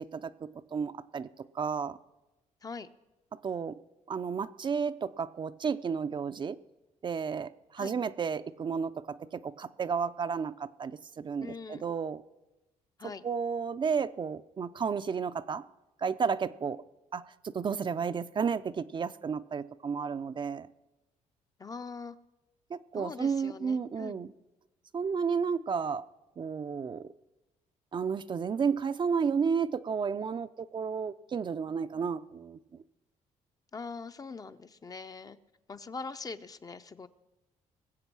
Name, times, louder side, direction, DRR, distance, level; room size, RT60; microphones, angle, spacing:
voice 1, 0.0-2.0 3.3-3.8 4.1-6.6 7.0-12.2 13.2-15.6 16.0-16.8 17.1-20.7 22.7-24.3 24.9-26.1 26.4-27.1 27.9-32.8, right 6 dB, 35° right, 11 dB, 0.5 m, -32 dB
voice 2, 11.4-11.8 13.0-13.3 21.6-22.2 22.9-24.2 33.7-35.4 35.7-37.1, left 4 dB, 25° left, 11 dB, 0.6 m, -42 dB
20.5 x 7.9 x 6.1 m, 1.0 s
cardioid pair, 95°, 13 cm